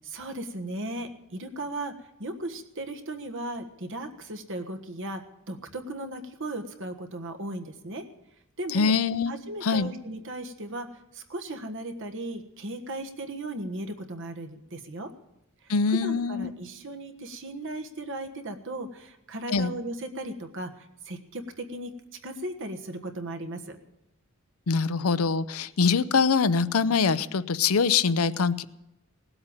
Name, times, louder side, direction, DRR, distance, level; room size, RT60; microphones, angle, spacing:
voice 1, 0.0-8.1 8.6-8.9 9.3-15.1 15.6-15.7 16.0-21.9 22.2-23.8, right 1 dB, 60° right, 6 dB, 1.5 m, -36 dB
voice 2, 8.7-9.3 9.6-9.9 15.7-16.5 19.5-19.7 24.7-28.6, left 5 dB, 75° left, 14 dB, 0.6 m, -24 dB
18.5 x 8.0 x 8.8 m, 0.90 s
head